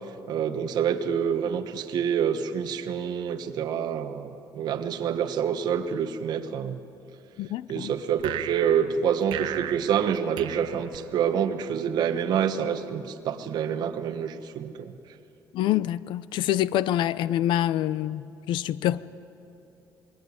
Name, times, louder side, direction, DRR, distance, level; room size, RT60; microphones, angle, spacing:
voice 1, 0.3-6.8 7.7-14.9, right 8 dB, 60° right, 1.3 m, -27 dB
voice 2, 7.4-7.9 15.5-19.0, left 12 dB, 85° left, 0.6 m, -26 dB
sound 1, 8.2-11.6, right 11 dB, 80° right, 1.1 m, -36 dB
27.0 x 21.0 x 9.7 m
cardioid pair, 170°, 8 cm